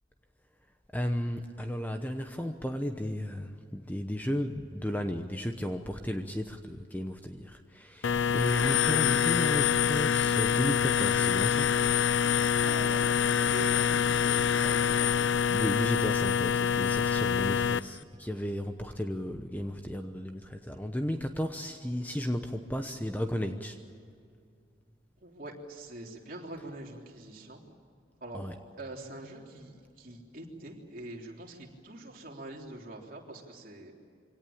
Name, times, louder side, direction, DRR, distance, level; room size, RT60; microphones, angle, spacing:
voice 1, 0.9-11.8 15.5-23.8 28.3-28.5, equal, 10° left, 6 dB, 0.9 m, -34 dB
sound 1, 8.0-17.8, left 8 dB, 75° left, 0.5 m, -26 dB
voice 2, 12.6-15.3 16.9-17.0 25.2-27.6 28.2-28.4 28.8-33.9, right 1 dB, 45° right, -1 dB, 3.6 m, -44 dB
24.5 x 18.0 x 8.8 m, 2.3 s
head